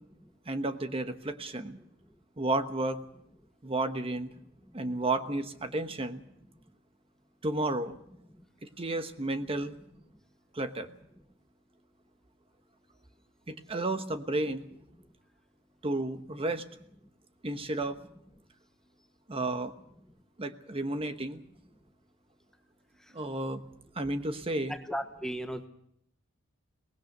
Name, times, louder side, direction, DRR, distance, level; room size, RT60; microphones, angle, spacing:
voice 1, 0.5-1.8 2.4-3.0 3.6-4.3 4.7-6.2 7.4-8.0 8.6-9.8 10.5-11.0 13.5-14.7 15.8-16.6 17.4-18.0 19.3-19.7 20.4-21.4 23.1-23.6 23.9-24.8, right 2 dB, 30° right, 9 dB, 1.2 m, -32 dB
voice 2, 24.7-25.7, equal, 5° left, 7 dB, 1.0 m, -35 dB
23.0 x 20.0 x 6.6 m, 0.72 s
head